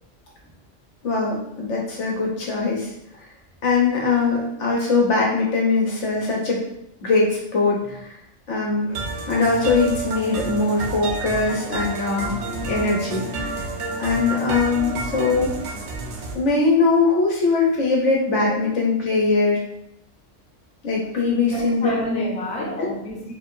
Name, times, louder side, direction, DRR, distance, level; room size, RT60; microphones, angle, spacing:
voice 1, 1.0-2.9 3.6-6.6 7.0-8.2 8.5-9.0 9.3-13.6 14.0-15.5 16.3-19.6 20.8-21.9 22.8-22.9, left 3 dB, 70° left, -2 dB, 1.3 m, -21 dB
sound 1, 8.9-16.3, right 3 dB, 70° right, 1.0 m, -30 dB
voice 2, 21.5-23.3, left 1 dB, 5° left, -4 dB, 0.6 m, -28 dB
4.2 x 3.4 x 2.7 m, 0.77 s
omnidirectional pair, 1.3 m